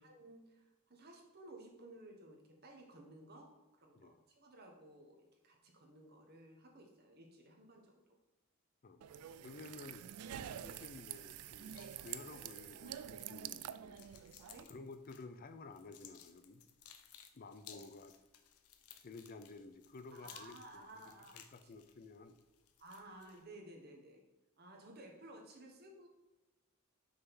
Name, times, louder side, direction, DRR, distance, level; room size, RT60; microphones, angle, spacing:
voice 1, 0.0-8.0 14.5-14.7 17.7-17.9 20.1-21.4 22.8-24.2 24.6-26.1, right 1 dB, 45° right, 2 dB, 1.3 m, -56 dB
sound 1, 9.0-14.6, right 10 dB, 85° right, 0.3 m, -47 dB
voice 2, 9.4-10.1 10.6-14.1 14.7-16.6 17.3-18.1 19.0-22.4, left 3 dB, 40° left, 9 dB, 0.5 m, -53 dB
sound 2, 11.7-23.4, left 9 dB, 85° left, 0.7 m, -60 dB
6.5 x 3.7 x 6.0 m, 1.1 s
head